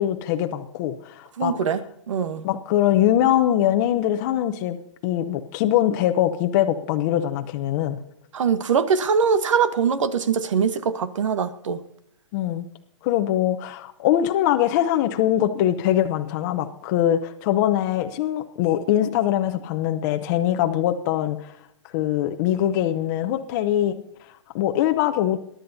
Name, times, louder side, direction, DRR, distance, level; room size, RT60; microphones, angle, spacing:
voice 1, 0.0-1.6 2.4-4.8 5.0-8.0 12.3-12.7 13.0-21.5 21.9-24.0 24.5-25.4, left 12 dB, 35° left, 0.7 m, -22 dB
voice 2, 1.4-2.5 8.3-11.8, right 6 dB, 80° right, 1.1 m, -22 dB
21.5 x 11.0 x 2.7 m
hypercardioid pair, 150°, 16 cm